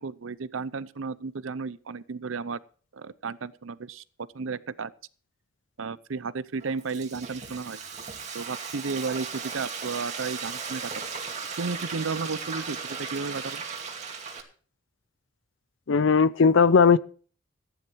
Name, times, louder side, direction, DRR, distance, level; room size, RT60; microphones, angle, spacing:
voice 1, 0.0-2.6 2.9-4.0 4.3-4.9 5.8-7.8 8.3-11.0 11.6-13.6, right 4 dB, 90° right, 17 dB, 0.7 m, -33 dB
Frying (food), 6.5-14.4, right 5 dB, 35° right, 2.4 m, -36 dB
voice 2, 15.9-17.0, left 5 dB, 70° left, 18 dB, 0.5 m, -18 dB
15.0 x 10.5 x 4.6 m, 0.42 s
head